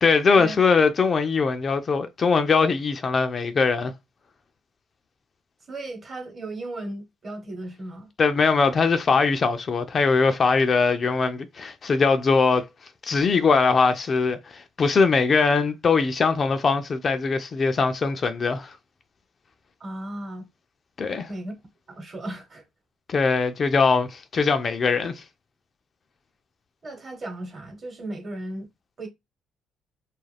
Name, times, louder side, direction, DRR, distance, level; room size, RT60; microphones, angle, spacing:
voice 1, 0.0-3.9 8.2-12.7 13.0-18.8 21.0-21.3 23.1-25.2, left 4 dB, 40° left, 0.4 m, -21 dB
voice 2, 5.7-8.1 19.8-20.5 21.3-21.5 21.9-22.6 26.8-28.7 29.0-29.1, right 2 dB, 40° right, 1.0 m, -35 dB
2.4 x 2.1 x 3.3 m
cardioid pair, 85°, 0 cm